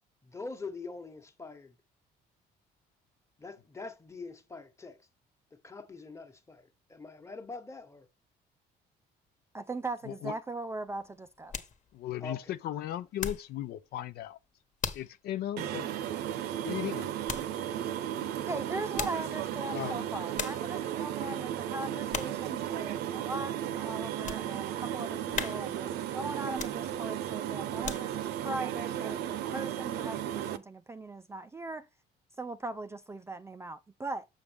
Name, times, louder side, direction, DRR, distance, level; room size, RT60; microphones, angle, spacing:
voice 1, 0.2-1.7 3.4-5.1 5.5-8.1 12.2-12.5, left 3 dB, 15° left, 1.2 m, -44 dB
voice 2, 9.5-11.5 18.5-31.9 32.4-34.3, right 2 dB, 15° right, 0.4 m, -39 dB
sound 1, 10.9-13.6 13.9-14.3 14.8-15.2 15.6-15.7 17.3-17.6 18.7-19.4 19.9-20.0 20.3-20.7 21.2-21.6 22.1-22.5 22.9-23.0 23.6-24.5 24.9-25.0 25.3-25.9 26.5-27.1 27.6-28.3 28.8-28.9, left 6 dB, 45° left, 1.3 m, -38 dB
voice 3, 11.9-14.4 14.9-15.9 16.6-17.1 19.7-20.0, left 12 dB, 70° left, 0.6 m, -36 dB
sound 2, 15.6-30.6, right 11 dB, 80° right, 0.8 m, -35 dB
7.1 x 6.3 x 3.5 m
cardioid pair, 110°, 17 cm